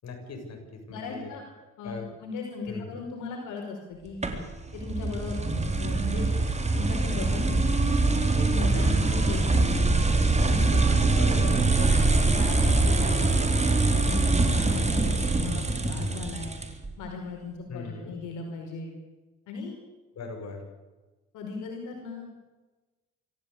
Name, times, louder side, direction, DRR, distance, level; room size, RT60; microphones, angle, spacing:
voice 1, 0.0-1.3 1.8-2.1 2.7-3.0 8.6-9.1 11.1-11.5 17.7-18.2 20.1-20.6, left 4 dB, 60° left, 3 dB, 7.2 m, -39 dB
voice 2, 0.9-1.4 1.8-2.0 2.2-4.2 4.7-6.3 6.7-7.8 8.3-9.9 10.4-11.9 12.2-13.5 14.0-16.6 17.0-18.9 19.5-19.8 21.3-22.4, left 4 dB, 85° left, 1 dB, 5.0 m, -37 dB
sound 1, 4.2-16.9, right 3 dB, 20° right, 4.0 m, -24 dB
26.0 x 15.0 x 8.5 m, 1.2 s
cardioid pair, 90°, 30 cm